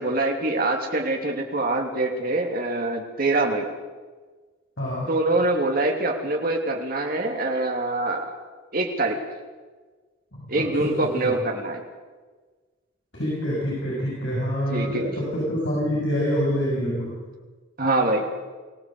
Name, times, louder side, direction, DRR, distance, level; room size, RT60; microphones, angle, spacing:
voice 1, 0.0-3.7 5.1-8.3 8.7-9.2 10.5-11.8 14.7-15.1 17.8-18.2, right 2 dB, 45° right, 1 dB, 3.1 m, -24 dB
voice 2, 4.8-5.1 10.3-11.3 13.1-17.2, equal, 65° left, -6 dB, 7.3 m, -26 dB
24.5 x 17.0 x 7.9 m, 1.4 s
head